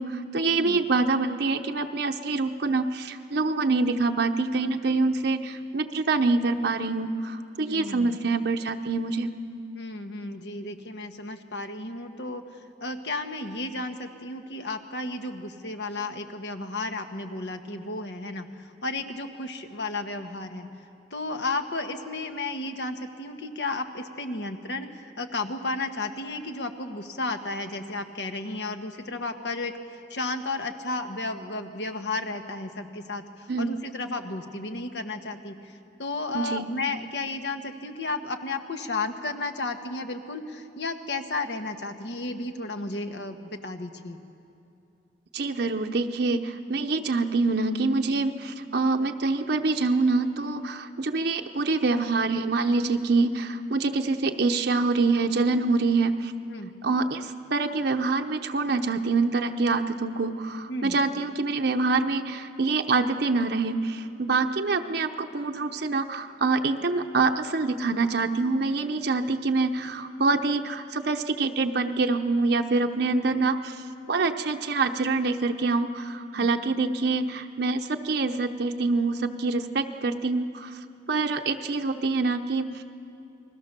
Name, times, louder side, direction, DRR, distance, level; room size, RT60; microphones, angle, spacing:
voice 1, 0.0-9.3 33.5-33.7 36.3-36.7 45.3-56.3 56.8-80.7 81.1-82.8, right 3 dB, 65° right, 5 dB, 0.8 m, -25 dB
voice 2, 7.7-8.2 9.7-12.4 12.8-20.7 21.1-44.2 56.5-56.7 60.7-61.0 76.3-76.5, left 2 dB, 75° left, 6 dB, 1.4 m, -33 dB
29.5 x 20.5 x 6.8 m, 2.6 s
head